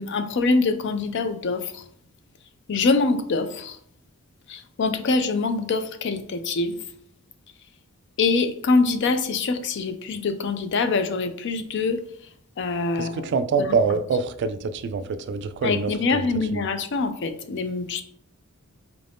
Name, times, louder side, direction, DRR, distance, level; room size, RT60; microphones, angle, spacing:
voice 1, 0.0-1.8 2.7-3.8 4.5-6.8 8.2-12.0 12.6-13.3 13.6-13.8 15.6-18.0, left 3 dB, 55° left, 10 dB, 0.4 m, -24 dB
voice 2, 13.0-16.3 16.5-16.6, right 4 dB, 55° right, 12 dB, 0.3 m, -25 dB
4.6 x 2.5 x 3.4 m, 0.64 s
head